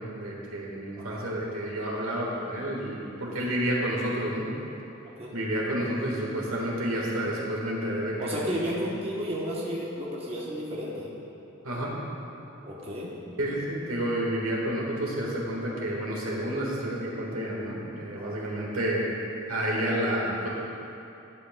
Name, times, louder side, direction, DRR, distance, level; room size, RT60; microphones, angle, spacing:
voice 1, 0.0-4.5 5.3-8.8 11.6-11.9 13.4-19.0 19.5-20.5, right 1 dB, 80° right, -3 dB, 1.5 m, -30 dB
voice 2, 8.2-11.1 12.6-13.1 18.1-18.4, equal, 30° right, -5 dB, 0.9 m, -33 dB
11.5 x 8.1 x 2.2 m, 2.8 s
head